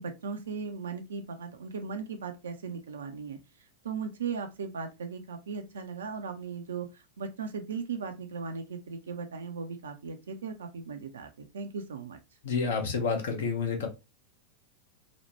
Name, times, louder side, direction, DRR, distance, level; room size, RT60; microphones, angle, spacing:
voice 1, 0.0-3.4 3.8-12.2, right 5 dB, 65° right, 6 dB, 0.4 m, -37 dB
voice 2, 12.4-13.9, left 5 dB, 60° left, 4 dB, 0.7 m, -29 dB
3.0 x 2.0 x 2.9 m, 0.26 s
figure-of-eight pair, 90°, 0 cm